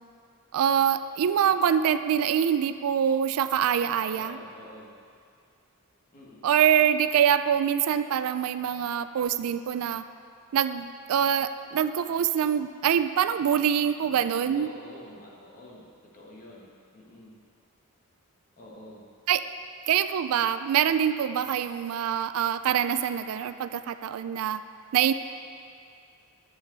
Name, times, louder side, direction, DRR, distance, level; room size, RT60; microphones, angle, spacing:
voice 1, 0.5-4.4 6.4-10.0 10.5-14.7 19.3-19.4 19.9-24.6 24.9-25.1, right 9 dB, 70° right, 12 dB, 0.3 m, -25 dB
voice 2, 4.1-4.9 6.1-6.4 14.5-15.9 16.1-17.4 18.6-19.1, left 1 dB, 40° left, -4 dB, 1.6 m, -47 dB
10.5 x 7.1 x 3.9 m, 2.3 s
head